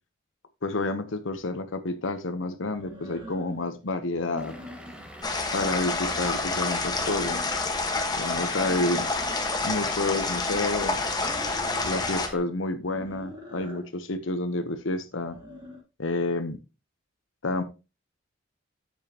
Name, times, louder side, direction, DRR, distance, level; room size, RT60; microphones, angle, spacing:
voice 1, 0.6-4.5 5.5-7.4 8.2-9.1 9.6-11.1 11.8-15.4 16.0-16.6 17.4-17.6, left 2 dB, 70° left, 0.9 m, -29 dB
sound 1, 1.3-1.4 2.7-3.6 4.1-5.1 5.5-6.4 6.8-7.7 8.3-10.4 11.2-12.0 12.8-13.9 15.1-15.8, left 1 dB, 25° right, 2.7 m, -44 dB
Vehicle / Engine, 4.4-12.4, equal, 5° right, 1.4 m, -45 dB
sound 2, 5.2-12.3, left 3 dB, 20° left, 1.4 m, -28 dB
9.0 x 7.3 x 2.9 m
head